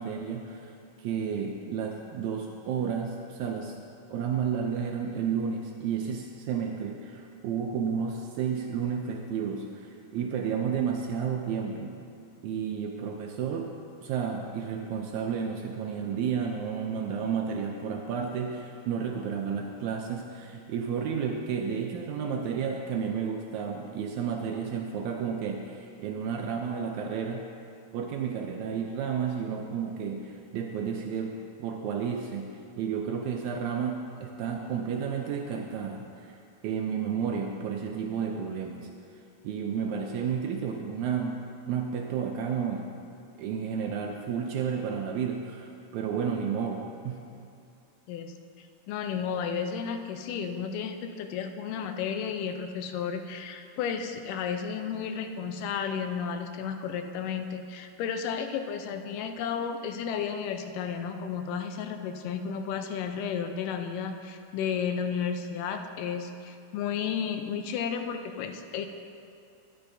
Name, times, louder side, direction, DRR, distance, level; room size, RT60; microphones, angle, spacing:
voice 1, 0.0-3.7 4.1-11.9 12.4-13.7 14.0-27.4 27.9-36.4 36.6-38.9 39.4-42.9 43.4-47.2, right 7 dB, 80° right, 2 dB, 1.7 m, -32 dB
voice 2, 48.1-68.9, left 7 dB, 80° left, 6 dB, 2.2 m, -33 dB
14.0 x 10.0 x 2.6 m, 2.5 s
omnidirectional pair, 3.8 m